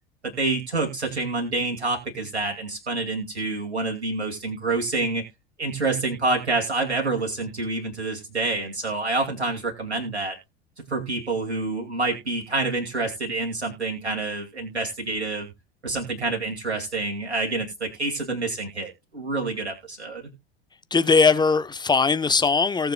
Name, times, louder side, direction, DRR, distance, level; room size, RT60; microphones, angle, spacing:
voice 1, 0.2-5.2 5.6-10.4 10.8-15.5 15.8-20.3, right 3 dB, 80° right, 2.5 m, -27 dB
voice 2, 20.9-22.9, left 4 dB, 15° left, 1.0 m, -20 dB
18.5 x 7.0 x 2.3 m
figure-of-eight pair, 70°, 32 cm